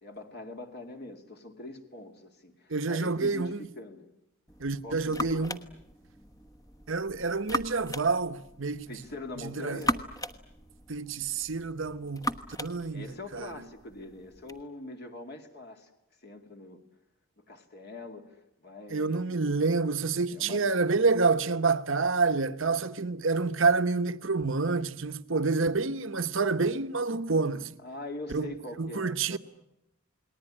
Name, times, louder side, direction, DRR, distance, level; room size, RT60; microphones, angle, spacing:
voice 1, 0.0-4.1 4.8-5.6 8.9-10.0 12.9-15.9 16.2-16.8 17.4-19.5 20.3-20.7 27.8-29.4, left 2 dB, 45° left, 2.3 m, -43 dB
voice 2, 2.7-3.7 4.6-5.6 6.9-9.0 9.4-9.8 10.9-12.3 12.6-13.5 18.9-27.8 28.3-28.5 28.8-29.4, right 4 dB, 60° right, 1.0 m, -28 dB
sound 1, 4.5-14.6, equal, 15° left, 1.1 m, -38 dB
29.0 x 20.0 x 9.9 m
head